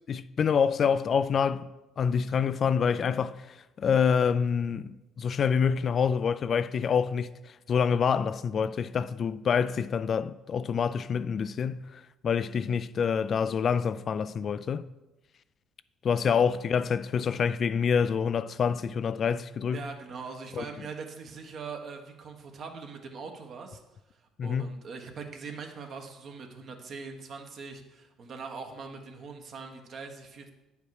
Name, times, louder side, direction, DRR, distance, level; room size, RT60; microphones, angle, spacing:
voice 1, 0.1-1.7 2.0-4.9 5.2-7.3 7.7-14.9 16.0-19.8 20.6-20.7 24.4-24.7, left 6 dB, 50° left, 0.3 m, -27 dB
voice 2, 19.7-23.8 24.1-30.5, right 5 dB, 55° right, 1.3 m, -42 dB
9.2 x 5.2 x 4.8 m
supercardioid pair, 70°, 0 cm